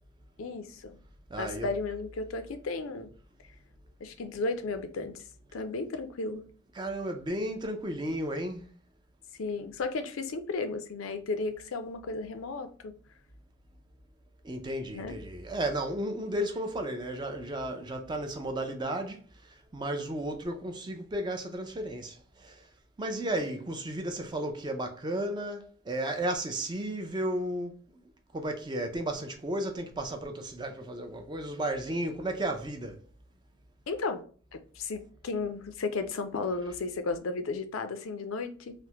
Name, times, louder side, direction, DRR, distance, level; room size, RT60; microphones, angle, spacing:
voice 1, 0.4-1.0 1.4-3.1 4.0-5.2 5.5-6.4 9.4-12.9 14.9-15.1 33.9-34.2 34.5-38.7, left 3 dB, 80° left, 0.5 m, -34 dB
voice 2, 1.3-1.7 6.7-8.7 14.4-22.7 23.0-28.0 28.3-33.0, right 1 dB, 20° right, 0.4 m, -34 dB
3.3 x 2.0 x 2.8 m
head